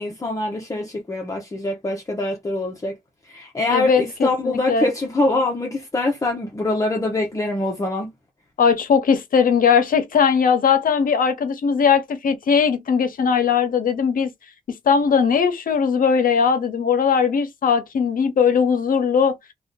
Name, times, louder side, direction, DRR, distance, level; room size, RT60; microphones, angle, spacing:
voice 1, 0.0-3.0 3.2-8.1, left 2 dB, 20° left, 0.8 m, -24 dB
voice 2, 3.7-4.9 8.6-14.3 14.7-19.3, left 6 dB, 85° left, 0.8 m, -19 dB
2.7 x 2.4 x 3.6 m
wide cardioid pair, 165°, 14 cm